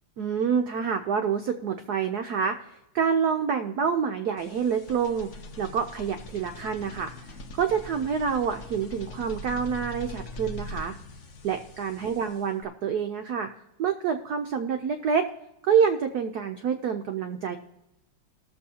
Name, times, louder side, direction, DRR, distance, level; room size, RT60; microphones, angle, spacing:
voice 1, 0.2-2.7 2.9-5.3 5.6-11.0 11.4-13.5 13.8-15.3 15.6-17.6, right 7 dB, 85° right, 6 dB, 0.8 m, -27 dB
sound 1, 4.4-12.6, left 1 dB, 70° left, 0.7 m, -42 dB
19.5 x 6.9 x 2.8 m, 0.93 s
omnidirectional pair, 2.4 m